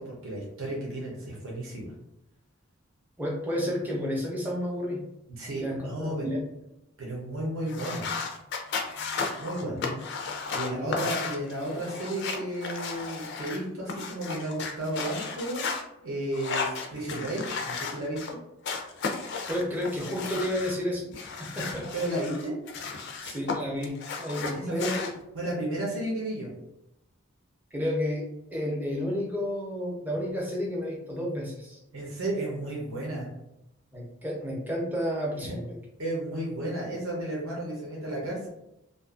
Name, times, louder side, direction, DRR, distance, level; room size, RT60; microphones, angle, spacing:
voice 1, 0.0-1.9 5.3-6.3 7.0-8.1 9.4-9.8 10.5-15.7 16.0-18.4 21.9-22.5 24.3-24.9 25.3-26.5 31.9-33.3 35.4-35.5 36.0-38.5, right 1 dB, 75° right, -4 dB, 0.8 m, -33 dB
voice 2, 3.2-5.0 5.6-6.4 9.6-10.0 10.6-11.0 19.5-21.9 23.2-25.1 27.7-28.2 28.5-31.8 33.9-35.8, equal, 10° right, -3 dB, 0.6 m, -31 dB
sound 1, 7.7-15.8 16.3-18.3 18.6-20.8 21.1-23.5 23.8-25.1, left 5 dB, 55° left, 0.4 m, -34 dB
2.6 x 2.3 x 2.4 m, 0.86 s
head